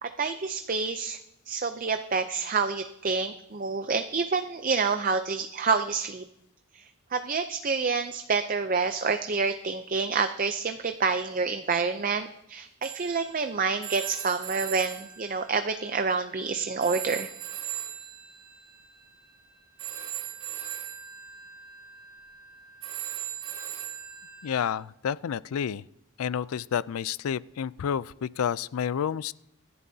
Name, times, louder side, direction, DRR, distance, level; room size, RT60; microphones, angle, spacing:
voice 1, 0.0-1.2 1.5-6.2 6.7-17.3, right 4 dB, 35° right, 8 dB, 0.5 m, -28 dB
Telephone, 12.8-16.5 16.8-24.7, right 11 dB, 60° right, 2.9 m, -39 dB
voice 2, 24.4-25.8 26.2-29.3, left 8 dB, 75° left, 20 dB, 0.4 m, -30 dB
24.5 x 11.0 x 2.8 m, 0.80 s
head